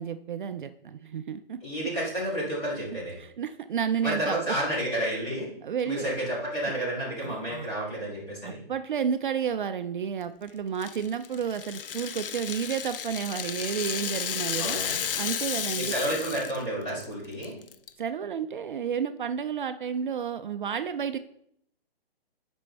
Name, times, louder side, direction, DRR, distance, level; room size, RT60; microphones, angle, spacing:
voice 1, 0.0-1.6 3.2-4.6 5.6-6.1 7.2-7.7 8.4-14.8 15.2-15.9 18.0-21.2, right 7 dB, 55° right, 10 dB, 0.4 m, -31 dB
voice 2, 1.6-3.1 4.0-5.5 5.8-8.6 14.6-15.0 15.8-17.5, right 1 dB, 15° left, -7 dB, 2.7 m, -30 dB
Rattle (instrument), 10.8-16.6 16.9-17.0 17.4-17.9, left 8 dB, 65° left, 0.6 m, -33 dB
9.8 x 5.2 x 3.4 m, 0.72 s
hypercardioid pair, 165°, 30 cm